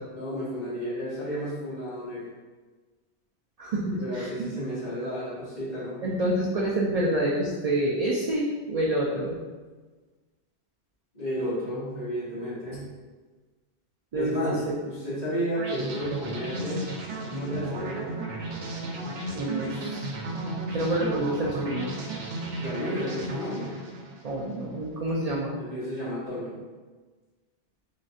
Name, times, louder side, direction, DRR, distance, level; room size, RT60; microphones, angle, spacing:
voice 1, 0.1-2.3 3.9-6.0 11.1-12.8 14.1-16.9 17.3-18.1 22.5-23.8 25.6-26.6, equal, 40° left, -11 dB, 1.7 m, -32 dB
voice 2, 3.6-4.5 6.0-9.4 14.1-14.3 14.7-14.8 19.3-20.1 20.7-21.9 24.2-25.5, right 1 dB, 60° right, -3 dB, 0.4 m, -27 dB
sound 1, 15.6-24.6, right 2 dB, 90° right, 1.0 m, -34 dB
3.9 x 3.1 x 2.6 m, 1.3 s
omnidirectional pair, 1.2 m